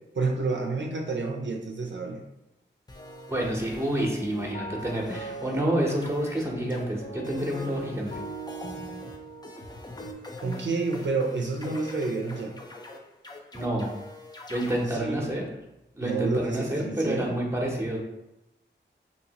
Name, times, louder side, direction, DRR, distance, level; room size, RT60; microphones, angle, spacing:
voice 1, 0.1-2.2 10.4-12.6 14.9-15.3 16.0-17.4, right 3 dB, 70° right, 1 dB, 0.4 m, -29 dB
sound 1, 2.9-10.1, right 2 dB, 40° left, 0.9 m, -41 dB
sound 2, 2.9-4.5 4.8-5.6 5.9-6.8 7.2-14.9, left 2 dB, 20° left, 0.4 m, -43 dB
voice 2, 3.3-8.1 13.5-14.0 14.5-15.4 15.9-18.0, right 1 dB, 15° right, -1 dB, 0.7 m, -28 dB
2.8 x 2.8 x 2.8 m, 0.91 s
wide cardioid pair, 70°, 20 cm